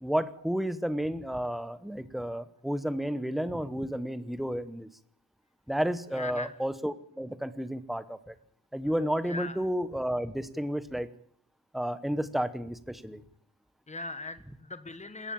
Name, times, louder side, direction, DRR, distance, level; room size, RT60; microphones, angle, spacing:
voice 1, 0.0-4.9 5.7-8.3 8.7-11.1 11.7-13.2, equal, ahead, 13 dB, 0.9 m, -31 dB
voice 2, 6.1-6.5 9.3-9.6 13.9-15.3, left 3 dB, 20° left, 12 dB, 1.4 m, -39 dB
20.0 x 15.0 x 8.7 m, 0.65 s
wide cardioid pair, 180°, 37 cm